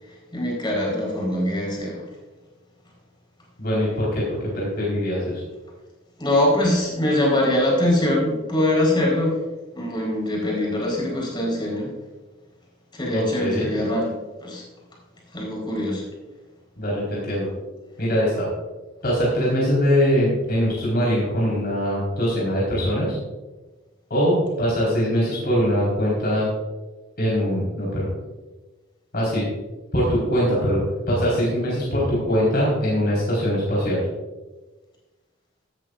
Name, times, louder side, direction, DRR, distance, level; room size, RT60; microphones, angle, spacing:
voice 1, 0.0-2.1 6.2-9.4 9.7-11.9 12.9-14.6 15.3-16.0, left 1 dB, 25° left, -3 dB, 4.5 m, -23 dB
voice 2, 3.6-5.4 13.1-13.7 16.8-17.5 18.0-18.5 19.0-23.2 24.1-26.5 27.2-28.1 29.1-29.4 29.9-34.0, equal, 50° left, -6 dB, 4.6 m, -22 dB
15.0 x 13.5 x 2.6 m, 1.2 s
head